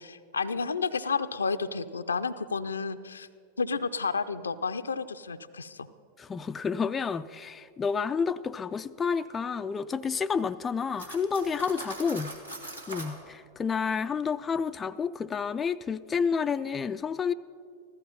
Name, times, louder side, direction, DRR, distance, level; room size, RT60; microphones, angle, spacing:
voice 1, 0.0-3.3 3.6-5.9, left 4 dB, 75° left, 11 dB, 0.5 m, -31 dB
voice 2, 6.2-12.4 12.9-17.3, left 6 dB, 20° left, 10 dB, 0.3 m, -30 dB
Cutlery silverware, 11.0-13.2, right 1 dB, 85° right, 1.9 m, -41 dB
15.5 x 14.0 x 5.5 m, 2.3 s
figure-of-eight pair, 90°, 0 cm